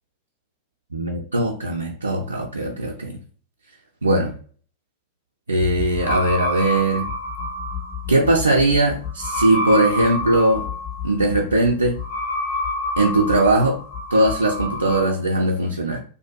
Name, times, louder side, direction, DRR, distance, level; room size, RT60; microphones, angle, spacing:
voice 1, 0.9-3.2 4.0-4.3 5.5-7.1 8.1-10.7 11.0-11.9 13.0-13.8 14.1-16.0, right 1 dB, 80° right, 0 dB, 0.3 m, -20 dB
sound 1, 5.6-15.1, left 2 dB, 65° left, 1.1 m, -28 dB
2.5 x 2.2 x 2.4 m, 0.43 s
figure-of-eight pair, 90°, 0 cm